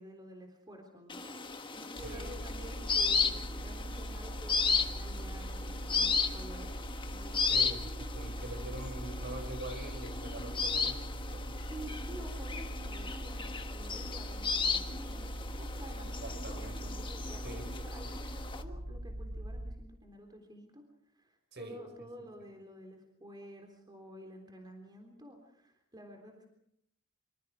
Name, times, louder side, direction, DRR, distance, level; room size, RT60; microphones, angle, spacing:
voice 1, 0.0-7.4 8.3-8.7 11.6-20.8 21.1-26.5, right 1 dB, 20° right, 4 dB, 3.6 m, -51 dB
sound 1, 1.1-18.6, left 4 dB, 25° left, 1.5 m, -35 dB
voice 2, 2.0-2.4 7.5-11.5 16.2-16.9 17.4-18.2 21.5-22.3, right 1 dB, 55° right, 7 dB, 5.6 m, -45 dB
sound 2, 2.0-19.7, right 1 dB, 80° right, 6.0 m, -41 dB
26.0 x 25.5 x 4.9 m, 0.70 s
head